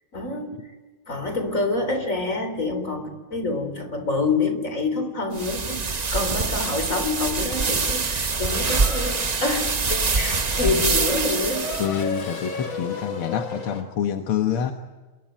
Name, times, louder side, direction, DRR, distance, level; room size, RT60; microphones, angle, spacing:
voice 1, 0.1-0.6 1.1-5.8 6.1-11.7, left 3 dB, 35° left, 8 dB, 4.1 m, -27 dB
sound 1, 5.3-11.9, right 4 dB, 35° right, 0.6 m, -25 dB
Race car auto racing / Accelerating revving vroom, 8.2-13.8, left 2 dB, 70° left, 3.9 m, -35 dB
voice 2, 11.8-14.7, left 8 dB, 85° left, 6 dB, 2.2 m, -27 dB
29.0 x 22.0 x 9.3 m, 1.3 s
omnidirectional pair, 2.3 m